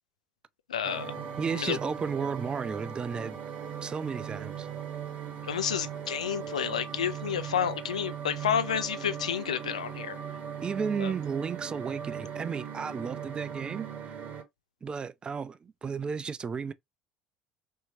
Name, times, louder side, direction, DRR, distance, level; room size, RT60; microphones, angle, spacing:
voice 1, 0.7-1.1 1.5-1.8 5.4-10.2 11.0-11.1, left 8 dB, 75° left, 0.4 m, -30 dB
sound 1, 0.8-14.4, right 8 dB, 45° right, 0.8 m, -39 dB
voice 2, 1.4-3.4 3.8-4.7 10.6-13.9 14.8-16.7, right 6 dB, 25° right, 0.3 m, -33 dB
3.5 x 2.8 x 2.8 m
figure-of-eight pair, 60°, 4 cm